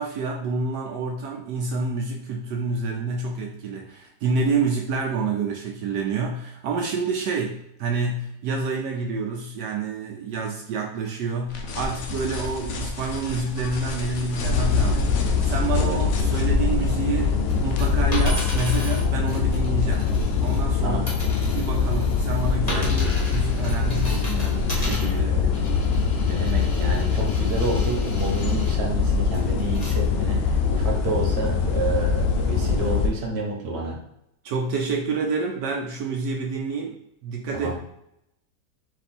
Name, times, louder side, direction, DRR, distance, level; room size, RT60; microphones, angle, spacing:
voice 1, 0.0-20.2 20.4-21.1 21.5-25.4 34.4-37.0 37.2-37.8, right 4 dB, 75° right, 0 dB, 1.2 m, -28 dB
sound 1, 11.5-18.7, left 3 dB, 65° left, 0.7 m, -34 dB
sound 2, 14.4-33.1, left 5 dB, 90° left, 1.3 m, -23 dB
sound 3, 17.5-20.8 21.1-28.7 29.3-29.9 30.5-30.6, left 1 dB, 25° left, 1.0 m, -37 dB
voice 2, 25.1-25.5 26.2-34.0 37.5-37.8, right 2 dB, 45° right, -1 dB, 1.1 m, -29 dB
4.2 x 2.6 x 4.2 m, 0.77 s
omnidirectional pair, 1.9 m